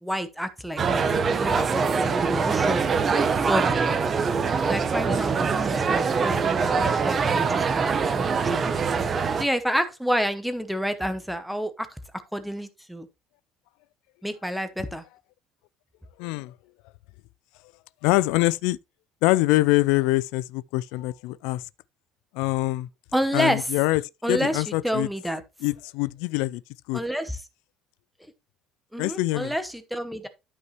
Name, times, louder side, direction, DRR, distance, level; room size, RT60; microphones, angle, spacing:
voice 1, 0.0-3.1 3.5-3.8 4.7-6.4 6.8-8.6 9.4-11.9 12.3-13.1 14.2-15.0 23.1-23.7 24.2-25.4 26.9-27.4 28.9-30.3, equal, ahead, 1.0 m, -29 dB
sound 1, 0.8-9.4, right 5 dB, 25° right, 0.8 m, -23 dB
voice 2, 16.2-16.5 18.0-18.8 19.2-21.6 22.3-22.9 23.3-24.0 24.3-25.1 25.6-26.6 26.9-27.0 29.0-29.5, left 19 dB, 85° left, 0.3 m, -24 dB
12.5 x 5.4 x 3.2 m
cardioid pair, 160°, 0 cm